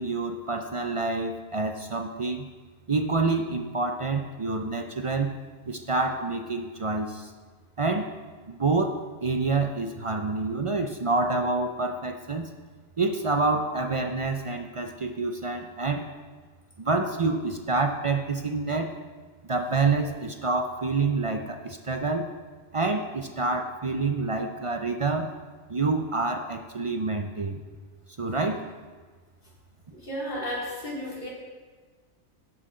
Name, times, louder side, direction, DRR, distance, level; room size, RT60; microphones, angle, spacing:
voice 1, 0.0-2.5 2.9-5.3 5.7-7.3 7.8-8.1 8.5-12.5 13.0-16.1 16.8-18.9 19.4-22.3 22.7-25.3 25.7-27.6 28.2-28.7, right 3 dB, 50° right, 4 dB, 0.4 m, -27 dB
voice 2, 30.0-31.3, equal, 40° left, -6 dB, 2.9 m, -33 dB
17.0 x 5.9 x 3.8 m, 1.4 s
omnidirectional pair, 1.3 m